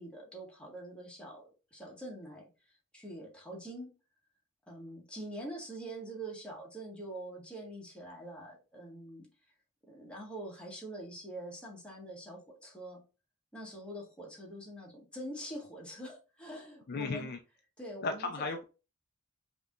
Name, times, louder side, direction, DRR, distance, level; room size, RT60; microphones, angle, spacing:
voice 1, 0.0-2.5 2.9-3.9 4.7-9.3 9.9-13.0 13.5-17.3 17.8-18.5, right 1 dB, 5° left, -3 dB, 1.6 m, -44 dB
voice 2, 16.9-17.4 18.0-18.6, left 3 dB, 45° left, 5 dB, 0.5 m, -35 dB
5.1 x 3.0 x 2.4 m, 0.31 s
head